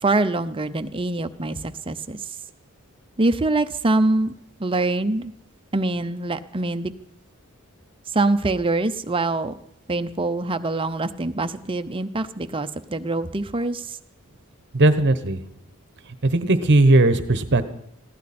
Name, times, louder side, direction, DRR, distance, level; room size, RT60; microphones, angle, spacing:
voice 1, 0.0-2.2 3.2-4.3 4.6-5.3 5.7-6.9 8.1-9.5 9.9-14.0, right 2 dB, 25° right, 9 dB, 0.6 m, -24 dB
voice 2, 14.7-15.4 16.1-17.6, right 2 dB, 50° right, 11 dB, 1.0 m, -18 dB
20.5 x 15.5 x 4.3 m, 0.70 s
head